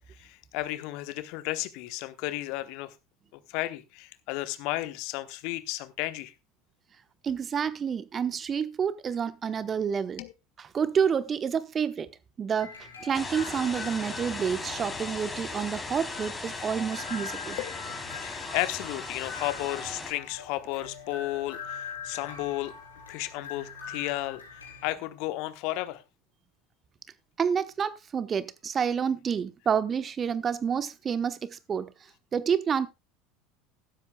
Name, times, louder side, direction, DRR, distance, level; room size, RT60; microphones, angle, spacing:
voice 1, 0.2-2.9 3.5-6.3 10.2-10.3 17.6-22.7 23.1-26.0, left 17 dB, 55° left, 1.1 m, -33 dB
voice 2, 7.2-10.2 10.6-12.1 12.4-17.6 27.4-31.9 32.3-32.9, right 7 dB, 30° right, 1.0 m, -29 dB
sound 1, 12.6-24.9, left 5 dB, 80° left, 4.8 m, -43 dB
sound 2, 13.1-20.1, left 3 dB, 15° left, 3.5 m, -38 dB
15.0 x 13.0 x 2.3 m
figure-of-eight pair, 75°, 0 cm